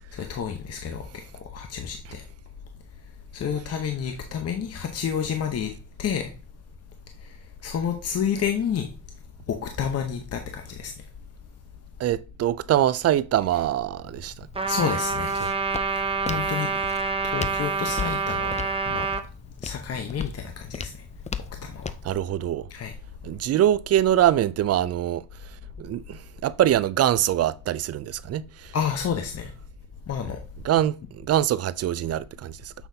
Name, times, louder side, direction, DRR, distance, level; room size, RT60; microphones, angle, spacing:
voice 1, 0.1-1.0 1.4-2.2 3.3-5.7 6.0-6.3 7.6-8.9 9.5-10.9 14.7-15.3 16.3-16.7 17.3-18.6 18.9-19.1 19.6-20.9 21.6-21.9 22.7-22.9 28.7-29.5 30.1-30.4, left 7 dB, 55° left, 1.0 m, -29 dB
voice 2, 12.0-14.5 15.4-15.5 16.3-16.5 22.0-22.7 23.2-28.7 30.6-32.7, right 12 dB, 55° right, 0.4 m, -24 dB
Walk footsteps, 14.0-22.1, left 6 dB, 25° left, 0.5 m, -38 dB
Trumpet, 14.6-19.2, right 4 dB, 20° right, 0.8 m, -27 dB
7.0 x 5.7 x 2.7 m
cardioid pair, 90°, 30 cm